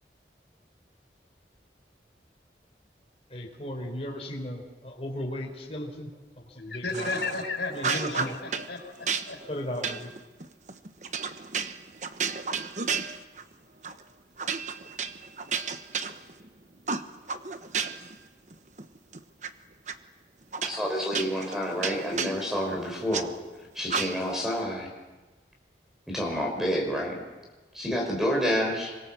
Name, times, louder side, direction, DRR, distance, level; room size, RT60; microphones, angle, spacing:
voice 1, 3.3-6.1 6.4-7.2 7.7-8.4 9.5-10.1, left 1 dB, 35° left, 0 dB, 4.2 m, -36 dB
voice 2, 6.7-9.4, left 3 dB, 80° left, 3 dB, 5.7 m, -34 dB
sound 1, 6.9-7.4 7.8-8.7 9.1-13.5 13.8-14.0 14.4-16.5 16.9-18.2 18.5-19.5 19.9-20.0 20.5-23.3 23.9-24.4, right 5 dB, 40° right, 1.1 m, -32 dB
voice 3, 20.6-23.3 23.7-24.9 26.1-27.2 27.7-28.9, equal, 5° right, 1 dB, 5.1 m, -29 dB
26.5 x 24.5 x 7.5 m, 1.2 s
head